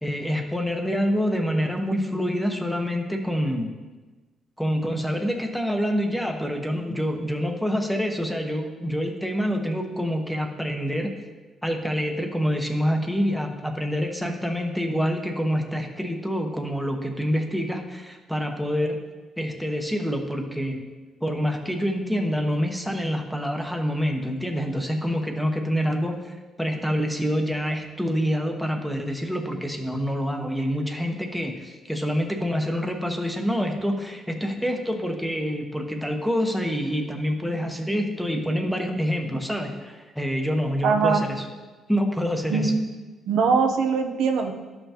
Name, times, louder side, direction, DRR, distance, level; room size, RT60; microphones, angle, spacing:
voice 1, 0.0-3.7 4.6-11.1 11.6-19.0 19.4-20.8 21.2-41.5 41.9-42.7, equal, ahead, 3 dB, 1.0 m, -26 dB
voice 2, 40.8-41.2 42.5-42.7 43.3-44.5, right 5 dB, 80° right, 4 dB, 0.8 m, -21 dB
11.5 x 5.6 x 2.9 m, 1.3 s
cardioid pair, 90°, 0 cm